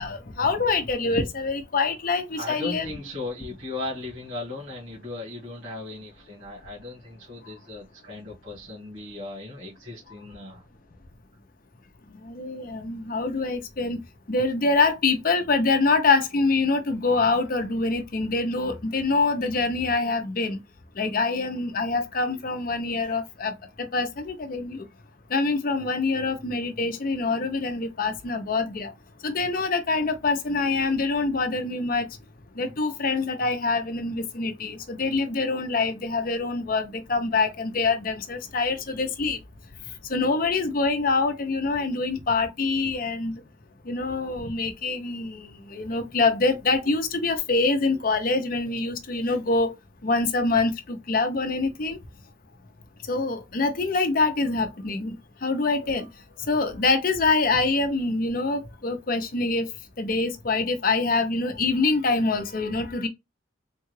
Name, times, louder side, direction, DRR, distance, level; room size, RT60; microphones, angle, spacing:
voice 1, 0.0-2.9 12.2-14.0 14.3-20.6 21.0-23.5 23.8-24.9 25.3-28.9 29.2-32.1 32.6-39.4 40.1-43.4 43.9-49.7 50.0-52.0 53.1-55.2 55.4-56.1 56.5-59.7 60.0-63.1, left 3 dB, 45° left, 0.6 m, -25 dB
voice 2, 2.4-10.6, left 2 dB, 65° right, 1.7 m, -37 dB
3.7 x 2.3 x 3.1 m
head